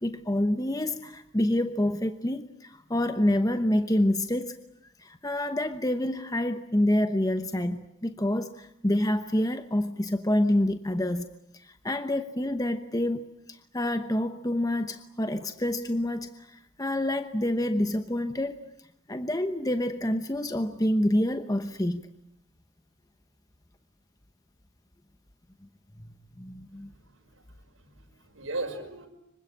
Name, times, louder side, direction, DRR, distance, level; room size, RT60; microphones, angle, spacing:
voice 1, 0.0-4.6 5.0-11.3 11.6-18.6 19.1-22.1 26.0-26.1 26.4-26.9, left 1 dB, 15° left, 9 dB, 0.9 m, -27 dB
voice 2, 26.8-27.4 27.8-29.1, right 2 dB, 75° right, 4 dB, 5.8 m, -38 dB
26.0 x 23.5 x 8.6 m, 0.78 s
head